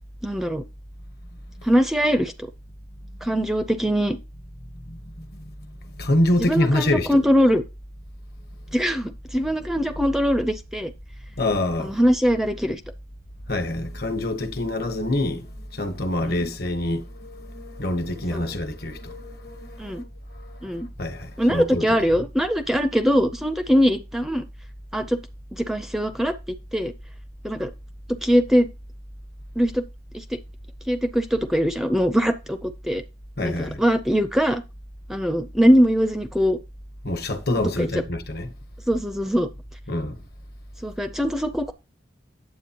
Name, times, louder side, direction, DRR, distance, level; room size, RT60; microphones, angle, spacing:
voice 1, 0.2-0.6 1.6-2.3 3.2-4.2 6.4-7.6 8.7-10.9 11.8-12.8 16.2-16.5 18.3-18.4 19.8-20.0 20.6-20.9 21.4-24.4 24.9-25.2 25.5-26.3 26.7-26.9 27.4-27.7 28.2-28.7 29.6-29.8 30.1-30.2 30.9-33.0 33.4-34.6 35.1-36.6 37.8-37.9 38.9-39.5 40.8-41.7, equal, ahead, 0.5 m, -22 dB
voice 2, 5.8-7.2 11.4-12.0 13.5-20.0 20.4-20.6 21.0-22.0 33.4-33.8 37.0-38.5 39.9-40.2, left 1 dB, 55° left, 1.3 m, -26 dB
9.3 x 7.7 x 2.9 m
head